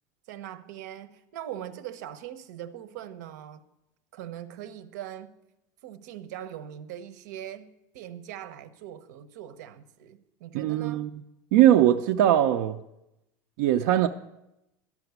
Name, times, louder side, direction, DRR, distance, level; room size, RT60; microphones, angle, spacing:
voice 1, 0.3-3.6 4.1-5.3 5.8-11.1, right 11 dB, 90° right, 0.8 m, -41 dB
voice 2, 10.5-11.1 11.5-12.8 13.6-14.1, right 12 dB, 65° right, 0.5 m, -20 dB
12.0 x 5.9 x 9.3 m
cardioid pair, 175°, 9 cm